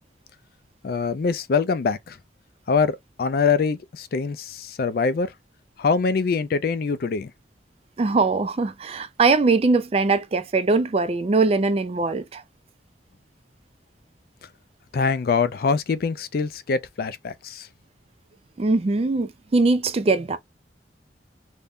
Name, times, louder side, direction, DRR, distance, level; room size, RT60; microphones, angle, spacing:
voice 1, 0.8-2.2 2.7-5.3 5.8-7.3 14.9-17.7, left 5 dB, 50° left, 0.3 m, -24 dB
voice 2, 8.0-12.4 18.6-20.4, right 3 dB, 30° right, 0.3 m, -21 dB
2.6 x 2.1 x 3.4 m
head